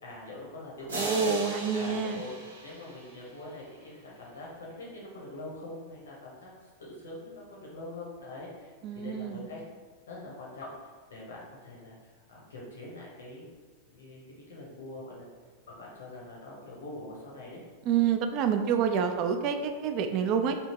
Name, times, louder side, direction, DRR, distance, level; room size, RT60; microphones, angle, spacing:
voice 1, 0.0-1.3 1.7-2.3 2.6-9.6 10.1-12.0 12.3-13.4 13.9-15.2 15.7-17.6, left 2 dB, 65° left, -4 dB, 0.9 m, -44 dB
sound 1, 0.9-3.6, right 1 dB, 70° right, 1.0 m, -38 dB
voice 2, 1.0-2.2 8.8-9.5 17.9-20.6, right 7 dB, 40° right, 7 dB, 0.4 m, -28 dB
3.4 x 2.7 x 4.4 m, 1.5 s
figure-of-eight pair, 90°, 0 cm